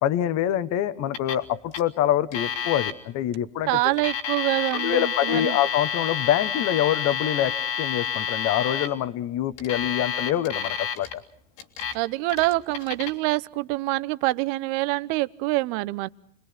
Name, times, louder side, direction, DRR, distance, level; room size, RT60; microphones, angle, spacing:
voice 1, 0.0-3.7 4.7-7.5 7.8-11.1, left 11 dB, 40° left, 14 dB, 1.4 m, -25 dB
Alarm, 1.1-1.4 1.7-1.8 2.3-2.9 3.8-8.9 9.6-11.1 11.6-11.9 12.3-13.1, left 7 dB, 75° left, 3.3 m, -29 dB
voice 2, 3.7-5.6 11.9-16.1, right 20 dB, 55° right, 17 dB, 1.0 m, -25 dB
28.5 x 20.5 x 6.0 m, 0.68 s
hypercardioid pair, 115°, 39 cm